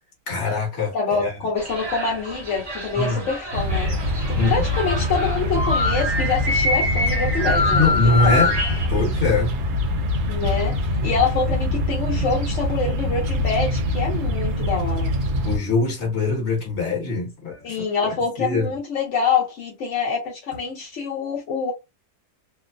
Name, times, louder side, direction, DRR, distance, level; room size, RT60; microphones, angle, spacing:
voice 1, 0.3-1.3 3.0-3.2 4.3-4.6 7.7-8.6 8.9-9.5 15.4-17.8 18.0-18.7, left 3 dB, 45° left, 1.4 m, -22 dB
voice 2, 0.9-4.0 4.3-8.4 10.3-15.1 17.6-21.7, left 5 dB, 60° left, 0.8 m, -26 dB
sound 1, 1.6-8.9, left 2 dB, 45° right, 0.3 m, -25 dB
sound 2, 3.5-15.6, left 1 dB, 70° right, 1.2 m, -24 dB
2.9 x 2.0 x 2.5 m
omnidirectional pair, 1.9 m